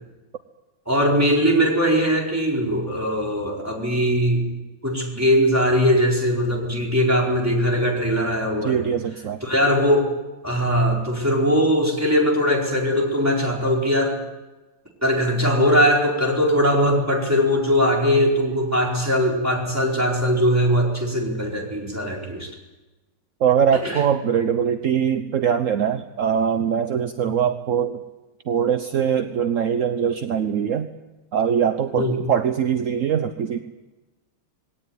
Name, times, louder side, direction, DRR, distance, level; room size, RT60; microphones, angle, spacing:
voice 1, 0.9-4.5 4.8-8.8 9.4-10.1 10.4-14.2 15.0-22.5 23.8-24.0 27.3-27.4 31.9-32.3, equal, 5° right, -1 dB, 4.6 m, -20 dB
voice 2, 8.6-9.4 23.4-28.0 28.5-30.9 31.3-33.6, right 8 dB, 55° right, 9 dB, 0.9 m, -22 dB
20.5 x 17.5 x 9.7 m, 1.1 s
omnidirectional pair, 2.3 m